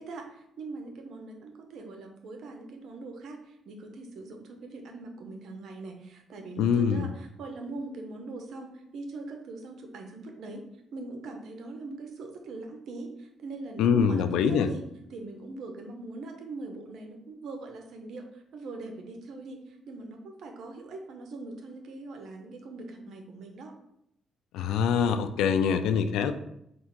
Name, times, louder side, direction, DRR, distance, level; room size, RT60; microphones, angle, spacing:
voice 1, 0.0-10.6 10.9-14.8 15.1-23.7, right 3 dB, 70° right, 3 dB, 0.7 m, -42 dB
voice 2, 6.6-7.1 13.8-14.7 24.5-26.3, left 7 dB, 90° left, 10 dB, 0.3 m, -24 dB
3.6 x 2.4 x 4.4 m, 0.78 s
cardioid pair, 90°, 0 cm